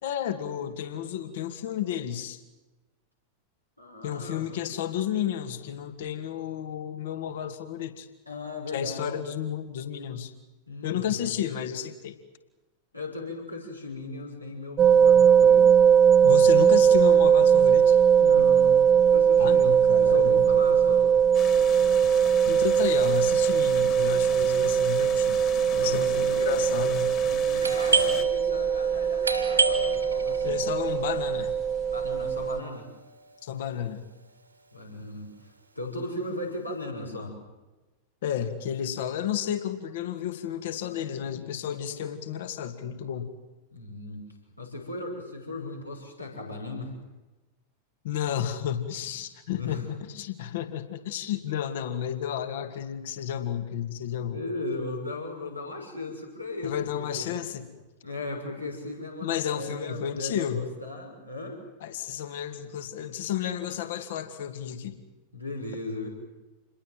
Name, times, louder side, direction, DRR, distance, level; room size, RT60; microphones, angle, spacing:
voice 1, 0.0-2.4 4.0-8.1 8.7-10.3 10.8-12.2 16.2-18.0 19.4-20.5 22.5-25.4 25.8-27.2 30.4-31.6 33.4-34.1 38.2-43.3 48.0-54.4 56.6-57.7 59.2-60.6 61.8-65.0, left 9 dB, 55° left, 8 dB, 2.5 m, -32 dB
voice 2, 3.8-4.5 8.3-9.1 10.7-11.3 12.9-15.8 18.1-19.7 20.0-21.1 25.7-26.8 27.2-30.6 31.9-32.9 34.7-37.3 43.7-44.2 44.6-46.9 49.0-49.1 49.5-49.8 50.5-50.6 54.1-57.3 58.0-61.6 65.3-66.1, left 2 dB, 85° left, 0 dB, 6.4 m, -37 dB
sound 1, 14.8-32.6, right 8 dB, 25° right, 1.1 m, -20 dB
sound 2, 21.3-28.2, left 10 dB, 40° left, 3.3 m, -40 dB
Doorbell, 27.6-33.1, right 4 dB, 80° right, 3.4 m, -30 dB
28.5 x 21.5 x 7.7 m, 1.1 s
figure-of-eight pair, 90°, 0 cm